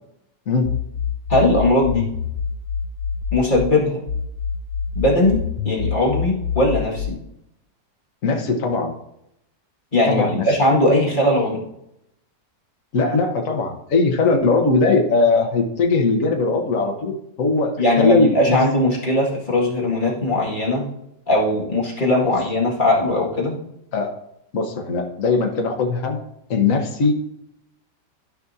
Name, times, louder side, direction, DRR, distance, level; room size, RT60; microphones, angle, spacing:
sound 1, 0.6-3.7 4.1-7.1, left 8 dB, 75° left, 0.7 m, -26 dB
voice 1, 1.3-2.1 3.3-4.0 4.9-7.2 9.9-11.6 17.8-20.9 21.3-23.6, left 1 dB, 25° left, -4 dB, 2.1 m, -19 dB
voice 2, 8.2-8.9 10.1-10.5 12.9-18.6 22.2-22.3 23.9-24.2 24.5-26.2 26.5-27.1, left 3 dB, 50° left, 3 dB, 1.5 m, -20 dB
13.0 x 5.4 x 2.8 m, 0.79 s
omnidirectional pair, 2.0 m